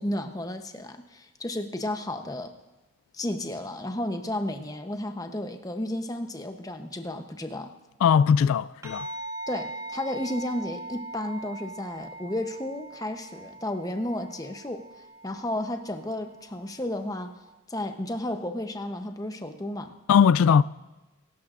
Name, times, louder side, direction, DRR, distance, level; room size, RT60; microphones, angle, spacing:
voice 1, 0.0-2.5 3.1-7.7 9.5-14.8 15.2-17.3 17.7-19.9, left 1 dB, 15° left, 0.7 m, -33 dB
voice 2, 8.0-9.1 20.1-20.6, left 7 dB, 90° left, 0.3 m, -19 dB
sound 1, 8.8-17.5, right 2 dB, 15° right, 2.2 m, -41 dB
23.0 x 12.5 x 2.5 m
head